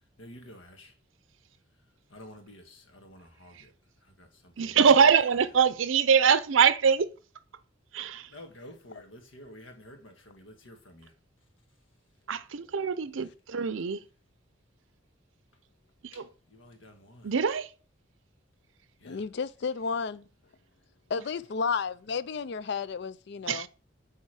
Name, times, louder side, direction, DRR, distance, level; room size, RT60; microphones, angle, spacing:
voice 1, 0.2-0.9 2.1-3.7 4.0-4.8 8.3-11.1 16.1-17.3 19.0-19.2, left 1 dB, 80° left, 1.6 m, -50 dB
voice 2, 4.6-7.1 7.9-8.3 12.3-14.0 16.0-16.3 17.2-17.7 23.5-23.7, right 6 dB, 80° right, 0.5 m, -23 dB
voice 3, 19.0-20.2 21.1-23.7, left 5 dB, 60° left, 0.4 m, -32 dB
8.8 x 3.6 x 4.8 m
head